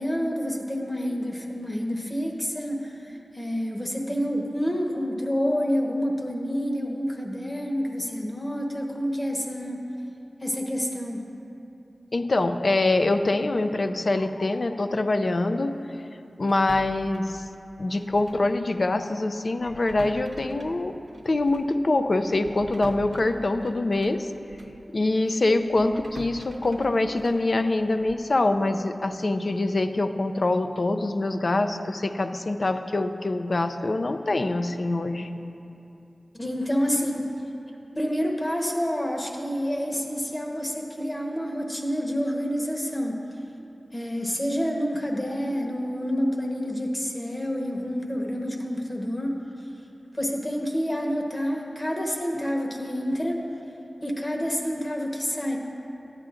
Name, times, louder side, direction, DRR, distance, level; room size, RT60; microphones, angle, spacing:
voice 1, 0.0-9.8 10.4-11.2 36.3-37.3 37.9-43.2 43.9-49.4 50.1-53.4 54.0-55.6, equal, 25° left, 0 dB, 1.1 m, -28 dB
voice 2, 12.1-15.7 16.4-17.5 17.8-20.9 21.2-24.3 24.9-35.3, left 2 dB, 60° left, 8 dB, 0.4 m, -24 dB
sound 1, 16.5-18.5 18.8-19.0 19.6-24.8 25.3-28.3, right 1 dB, 55° right, 0.8 m, -45 dB
14.0 x 9.7 x 2.5 m, 2.8 s
wide cardioid pair, 70°, 0 cm